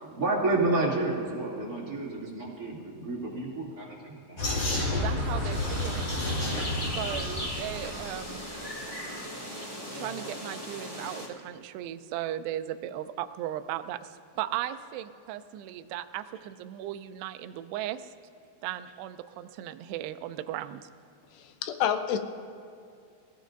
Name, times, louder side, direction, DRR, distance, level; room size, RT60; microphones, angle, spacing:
voice 1, 0.0-4.4, right 2 dB, 25° right, -3 dB, 2.4 m, -30 dB
Vehicle, 4.4-8.3, left 1 dB, 35° left, 4.7 m, -30 dB
voice 2, 4.9-6.1 6.9-8.5 9.9-18.1 18.6-20.9, right 12 dB, 80° right, 10 dB, 2.5 m, -37 dB
sound 1, 5.5-11.3, left 1 dB, 55° left, 0.3 m, -38 dB
voice 3, 21.3-22.2, left 9 dB, 80° left, 8 dB, 2.8 m, -28 dB
28.0 x 16.5 x 2.6 m, 2.4 s
omnidirectional pair, 5.1 m